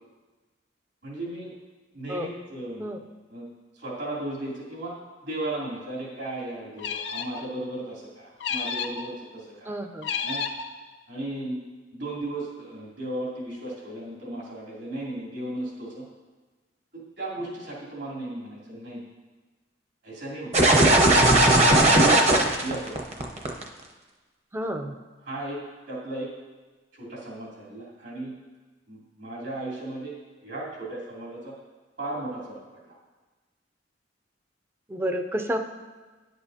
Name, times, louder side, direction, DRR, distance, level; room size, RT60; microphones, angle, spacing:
voice 1, 1.0-1.5 1.9-2.9 3.3-3.5 3.7-4.9 5.2-9.7 10.2-10.4 11.1-11.6 11.9-16.0 16.9-19.0 20.0-20.7 21.7-23.0 25.2-25.6 25.9-26.3 26.9-28.3 28.9-30.2 30.4-31.5 32.0-33.0, right 1 dB, 75° right, -5 dB, 2.9 m, -35 dB
sound 1, 6.8-7.5 8.4-9.1 10.0-10.7, left 6 dB, 80° left, 0.5 m, -31 dB
voice 2, 9.7-10.1 22.1-22.4 24.5-24.9 34.9-35.6, equal, 15° right, 6 dB, 0.4 m, -30 dB
sound 2, 20.5-23.6, right 1 dB, 40° right, 0.8 m, -17 dB
10.5 x 7.9 x 2.8 m, 1.3 s
head